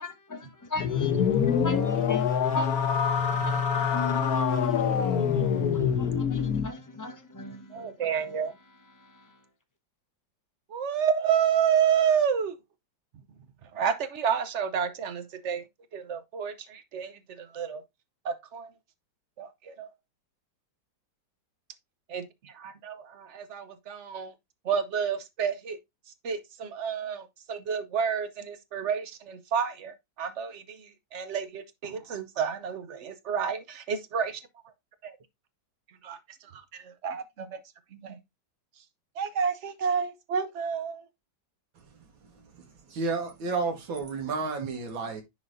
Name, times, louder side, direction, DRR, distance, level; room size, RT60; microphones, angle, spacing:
voice 1, 0.0-2.8 3.3-7.9 9.0-9.4, left 2 dB, 25° left, 0.4 m, -38 dB
sound 1, 0.8-6.7, left 7 dB, 60° left, 1.2 m, -25 dB
voice 2, 7.7-8.5 10.7-12.6 13.6-15.6 15.9-17.8 18.2-18.7 19.4-19.9 22.1-24.3 24.6-25.8 26.2-34.4 35.0-35.2 36.0-37.6 37.9-38.2 39.1-41.1, right 7 dB, 65° right, 0.7 m, -30 dB
voice 3, 42.9-45.2, right 4 dB, 85° right, 2.3 m, -31 dB
10.5 x 4.1 x 2.6 m
omnidirectional pair, 2.1 m